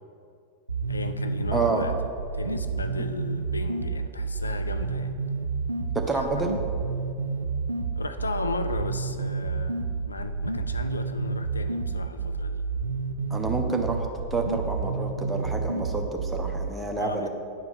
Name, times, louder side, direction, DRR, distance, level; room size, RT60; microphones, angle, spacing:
sound 1, 0.7-16.7, right 4 dB, 80° right, 0.4 m, -30 dB
voice 1, 0.9-2.0 2.3-5.1 6.1-6.5 7.9-9.8 10.1-12.7 17.0-17.3, left 3 dB, 80° left, 9 dB, 0.4 m, -35 dB
voice 2, 1.5-1.8 5.9-6.6 13.3-14.1 14.3-17.3, right 3 dB, 10° right, 2 dB, 0.9 m, -28 dB
9.5 x 4.7 x 5.7 m, 2.5 s
figure-of-eight pair, 90°, 0 cm